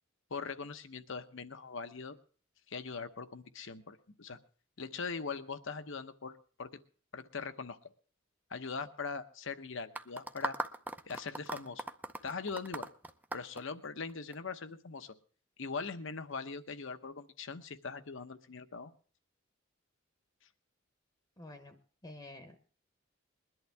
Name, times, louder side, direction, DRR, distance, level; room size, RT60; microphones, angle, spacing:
voice 1, 0.3-2.2 2.7-4.4 4.8-6.7 7.1-7.8 8.5-10.6 11.1-11.8 12.2-12.9 13.3-15.1 15.6-18.9, left 4 dB, 70° left, 11 dB, 0.9 m, -41 dB
sound 1, 10.0-14.4, right 2 dB, 10° right, 0.6 m, -39 dB
voice 2, 21.4-21.8 22.0-22.7, left 2 dB, 20° left, 6 dB, 1.0 m, -49 dB
21.5 x 11.0 x 3.4 m, 0.42 s
head